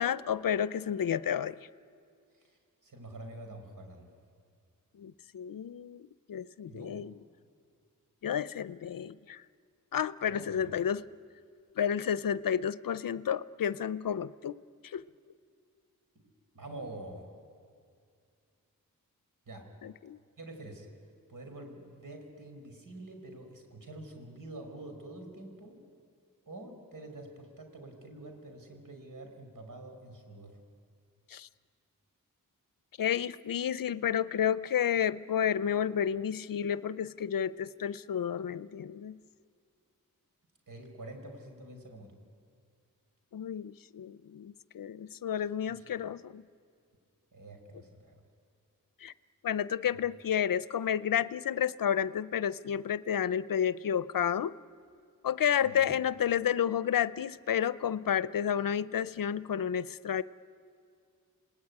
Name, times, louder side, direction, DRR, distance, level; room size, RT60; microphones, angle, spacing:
voice 1, 0.0-1.6 5.0-7.1 8.2-9.4 9.9-11.0 11.8-14.6 14.9-15.0 19.8-20.2 31.3-31.5 33.0-39.2 43.3-46.4 49.0-49.1 49.4-54.5 55.2-60.2, left 9 dB, 70° left, 17 dB, 0.6 m, -31 dB
voice 2, 2.4-4.1 6.7-7.0 10.3-10.7 16.5-17.3 19.5-19.7 20.4-20.9 21.3-25.8 26.5-30.6 40.7-42.2 45.6-45.9 47.3-48.2 49.8-50.0 55.6-56.0, right 2 dB, 65° right, 4 dB, 5.2 m, -47 dB
27.5 x 19.0 x 9.7 m, 2.2 s
cardioid pair, 45°, 35 cm